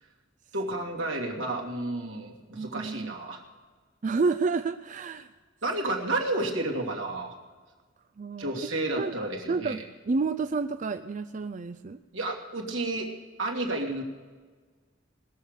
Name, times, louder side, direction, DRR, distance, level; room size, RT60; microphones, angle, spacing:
voice 1, 0.5-3.4 5.6-7.3 8.4-9.8 12.1-13.1 13.4-14.0, right 2 dB, 85° right, -1 dB, 2.7 m, -31 dB
voice 2, 2.5-3.2 4.0-5.3 8.2-8.5 9.0-9.1 9.5-9.8 10.1-12.0, right 4 dB, 40° right, 9 dB, 0.4 m, -29 dB
20.0 x 7.1 x 6.5 m, 1.4 s
head